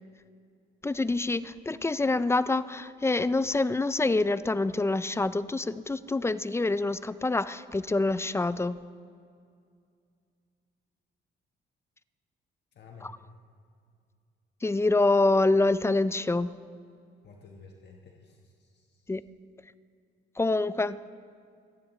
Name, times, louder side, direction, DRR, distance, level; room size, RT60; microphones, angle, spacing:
voice 1, 0.8-8.8 13.0-13.1 14.6-16.5 19.1-19.2 20.4-21.0, left 2 dB, 15° left, 15 dB, 0.4 m, -26 dB
voice 2, 12.7-13.1 17.2-19.1, left 4 dB, 60° left, 1 dB, 1.3 m, -52 dB
25.5 x 10.5 x 3.1 m, 2.3 s
cardioid pair, 90°, 20 cm